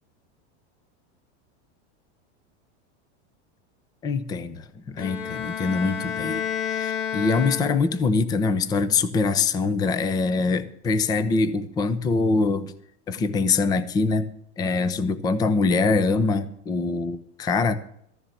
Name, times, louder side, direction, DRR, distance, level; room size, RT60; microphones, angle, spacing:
voice 1, 4.0-12.7 13.1-14.3 14.6-17.7, left 4 dB, 10° left, 14 dB, 0.5 m, -24 dB
Bowed string instrument, 5.0-8.1, left 8 dB, 55° left, 1.8 m, -30 dB
14.0 x 7.2 x 7.7 m, 0.69 s
supercardioid pair, 170°, 34 cm